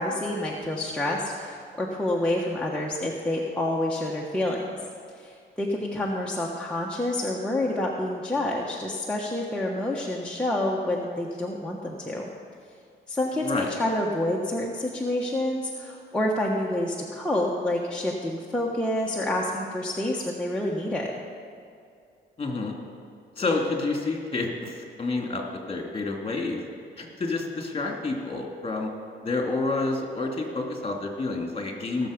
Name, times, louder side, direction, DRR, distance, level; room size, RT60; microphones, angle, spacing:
voice 1, 0.0-4.6 5.2-12.3 13.1-21.1, left 1 dB, 5° left, -4 dB, 1.2 m, -28 dB
voice 2, 22.4-22.7 23.4-26.6 27.0-28.9 29.2-32.1, left 3 dB, 25° left, 0 dB, 2.5 m, -29 dB
18.5 x 7.0 x 5.2 m, 2.4 s
cardioid pair, 90°, 20 cm